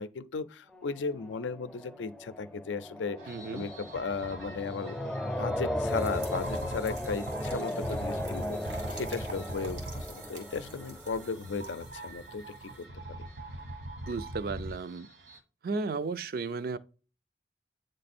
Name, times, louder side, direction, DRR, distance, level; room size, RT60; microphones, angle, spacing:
voice 1, 0.0-4.9 5.4-12.9, left 4 dB, 90° left, 0.5 m, -36 dB
sound 1, 0.7-11.5, left 1 dB, 5° left, 0.5 m, -37 dB
sound 2, 3.2-15.4, right 1 dB, 70° right, 1.1 m, -43 dB
voice 2, 3.3-3.6 14.1-15.1 15.6-16.8, right 4 dB, 55° right, 0.4 m, -34 dB
sound 3, 5.8-12.8, right 3 dB, 90° right, 2.0 m, -49 dB
8.5 x 3.2 x 4.2 m
head